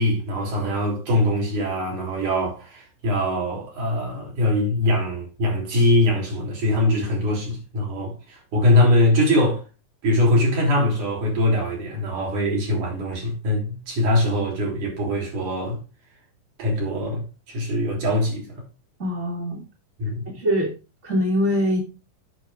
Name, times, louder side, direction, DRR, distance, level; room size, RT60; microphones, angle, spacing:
voice 1, 0.0-9.6 10.0-15.8 16.6-18.5 20.0-20.3, left 1 dB, 65° right, 4.9 m, -22 dB
voice 2, 19.0-19.6 20.3-20.7 21.0-21.8, equal, 25° right, 1.8 m, -22 dB
8.1 x 6.1 x 5.0 m
omnidirectional pair, 3.9 m